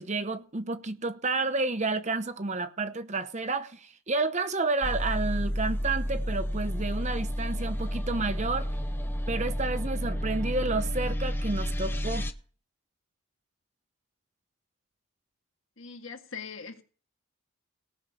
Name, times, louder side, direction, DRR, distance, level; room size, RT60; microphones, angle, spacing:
voice 1, 0.0-8.7 9.3-12.3, right 3 dB, 30° right, 0.8 m, -30 dB
sound 1, 4.8-12.3, equal, 10° left, 0.7 m, -31 dB
voice 2, 15.8-16.8, left 5 dB, 60° left, 1.9 m, -41 dB
18.0 x 6.4 x 6.6 m
head